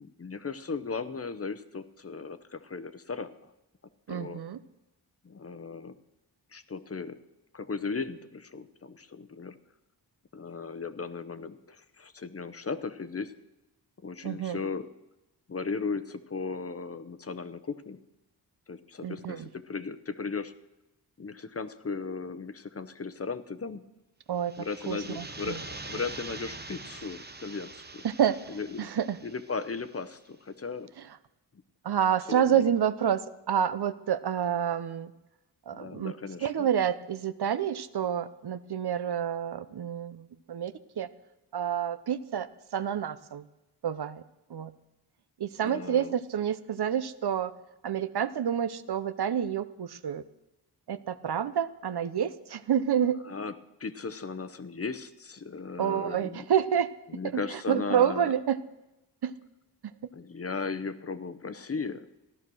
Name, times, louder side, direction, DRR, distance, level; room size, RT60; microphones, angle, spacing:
voice 1, 0.0-3.5 4.1-4.4 5.2-5.9 6.5-7.2 7.5-9.6 10.3-13.3 14.0-14.9 15.5-18.0 18.7-20.5 21.2-23.8 24.6-28.0 28.5-28.9 29.2-30.9 32.3-32.8 35.7-36.7 45.6-46.1 53.2-53.5 53.8-56.4 57.1-58.3 60.1-62.1, left 4 dB, 35° left, 12 dB, 0.8 m, -36 dB
voice 2, 4.1-4.6 14.2-14.6 19.0-19.4 24.3-24.5 24.9-25.5 28.0-28.4 28.8-29.2 31.8-35.1 35.7-36.1 36.4-41.1 41.5-42.5 42.7-43.4 43.8-44.2 44.5-44.7 45.4-47.5 47.8-50.2 50.9-53.2 55.8-56.9 57.3-57.4 57.7-58.6 59.2-59.3, right 9 dB, 65° right, 13 dB, 0.8 m, -28 dB
sound 1, 24.4-30.0, right 3 dB, 25° right, 0.9 m, -44 dB
15.0 x 12.0 x 6.2 m, 0.98 s
wide cardioid pair, 105°, 41 cm